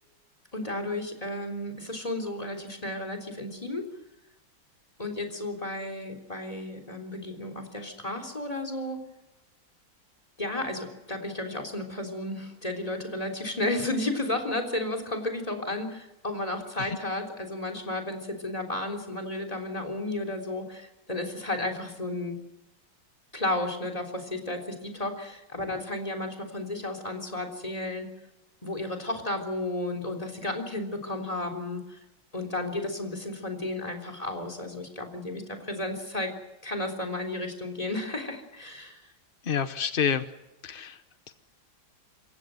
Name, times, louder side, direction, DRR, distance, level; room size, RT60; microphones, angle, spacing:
voice 1, 0.5-3.9 5.0-9.0 10.4-22.4 23.3-28.1 28.6-32.0 32.3-36.3 36.6-39.0, left 2 dB, 15° left, 7 dB, 3.7 m, -33 dB
voice 2, 39.4-40.3 40.6-41.0 41.3-41.4, left 7 dB, 65° left, 11 dB, 0.5 m, -28 dB
27.5 x 15.5 x 7.8 m, 0.95 s
omnidirectional pair, 2.2 m